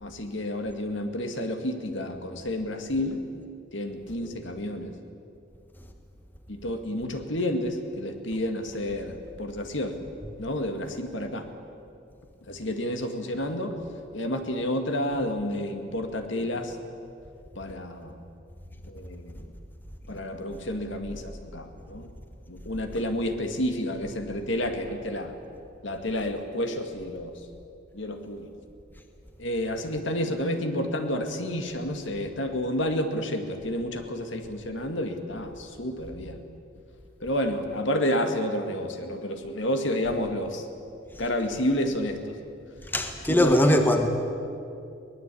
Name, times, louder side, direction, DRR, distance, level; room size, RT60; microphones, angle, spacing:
voice 1, 0.0-3.3 3.7-4.9 6.5-10.0 10.4-11.5 12.5-13.8 14.1-16.8 17.6-18.2 18.9-19.4 20.1-22.1 22.5-25.4 25.8-27.4 27.9-28.5 29.4-36.4 37.2-40.7 41.2-42.3 43.3-43.8, left 1 dB, 65° left, 6 dB, 2.1 m, -30 dB
voice 2, 42.9-44.1, left 1 dB, 10° left, 5 dB, 1.3 m, -21 dB
23.0 x 19.5 x 8.5 m, 2.6 s
head